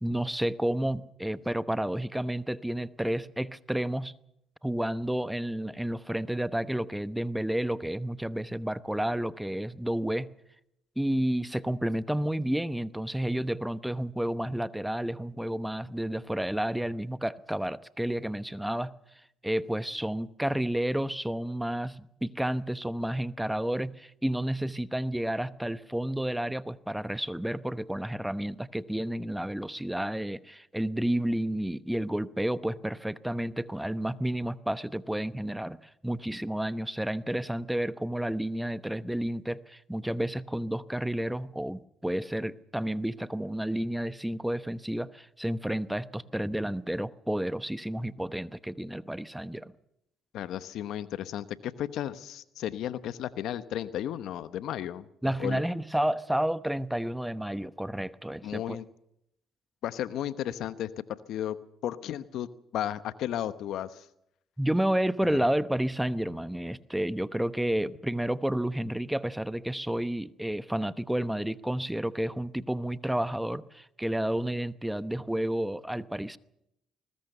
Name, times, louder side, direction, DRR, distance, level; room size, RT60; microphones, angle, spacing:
voice 1, 0.0-4.1 4.6-10.3 11.0-18.9 19.4-35.8 36.0-49.7 55.2-58.8 64.6-76.4, right 1 dB, 5° right, 0.9 m, -31 dB
voice 2, 50.3-55.1 55.4-55.6 58.4-58.8 59.8-61.6 61.8-64.0 65.3-65.4, left 11 dB, 75° left, 1.0 m, -34 dB
21.0 x 20.0 x 6.8 m
supercardioid pair, 65°, 0 cm